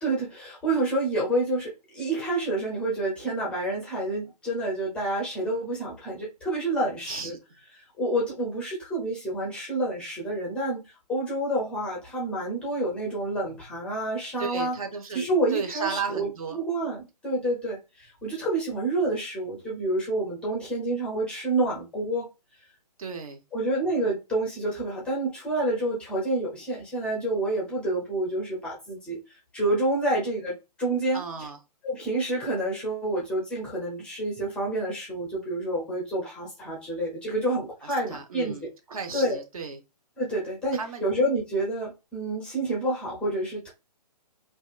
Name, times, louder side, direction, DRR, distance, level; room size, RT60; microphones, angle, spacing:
voice 1, 0.0-7.3 7.7-10.8 11.1-14.8 15.1-22.3 23.5-29.2 29.5-31.5 31.8-38.6 39.1-39.4 40.2-43.7, right 1 dB, 5° left, -2 dB, 0.5 m, -28 dB
voice 2, 7.1-7.4 14.4-15.3 15.5-16.6 23.0-23.4 31.1-31.6 38.1-39.8 40.7-41.1, right 5 dB, 55° right, 7 dB, 0.6 m, -34 dB
2.7 x 2.3 x 2.3 m, 0.26 s
figure-of-eight pair, 135°, 21 cm